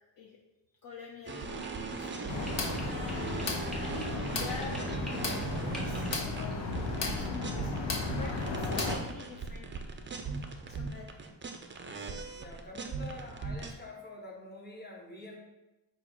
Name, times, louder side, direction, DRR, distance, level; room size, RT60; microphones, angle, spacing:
voice 1, 0.8-3.0 3.8-7.7 8.1-9.7 10.7-11.1 11.8-12.3, left 4 dB, 50° left, -1 dB, 0.5 m, -46 dB
sound 1, 1.3-7.8 8.1-13.7, right 4 dB, 30° right, 0.4 m, -39 dB
sound 2, 1.6-7.2, equal, ahead, 0.7 m, -48 dB
Brussels Pedestrian Crossing Lights Sound, 2.3-9.0, left 3 dB, 80° left, 0.8 m, -34 dB
voice 2, 12.3-15.4, left 1 dB, 20° left, -1 dB, 1.0 m, -46 dB
4.6 x 2.4 x 4.4 m, 1.0 s
cardioid pair, 85°, 44 cm